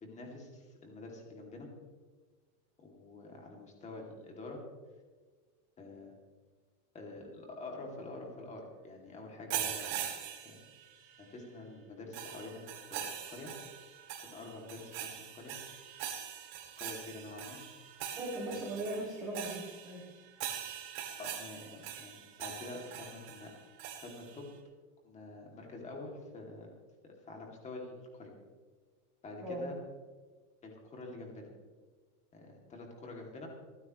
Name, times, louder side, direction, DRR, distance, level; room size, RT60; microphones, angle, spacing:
voice 1, 0.0-1.7 2.8-4.6 5.8-6.1 6.9-10.1 10.4-10.5 11.2-13.5 14.2-15.5 16.8-17.6 18.5-18.8 21.2-23.5 23.9-24.5 25.0-26.7 27.0-28.3 29.2-29.7 30.6-31.5 32.3-33.5, left 2 dB, 15° left, 1 dB, 2.6 m, -47 dB
sound 1, 9.5-11.2 12.1-24.4, right 9 dB, 50° right, 2.8 m, -42 dB
voice 2, 18.1-20.0 29.4-29.6, right 1 dB, 5° right, -4 dB, 0.3 m, -38 dB
28.5 x 9.5 x 3.1 m, 1.5 s
supercardioid pair, 170°, 46 cm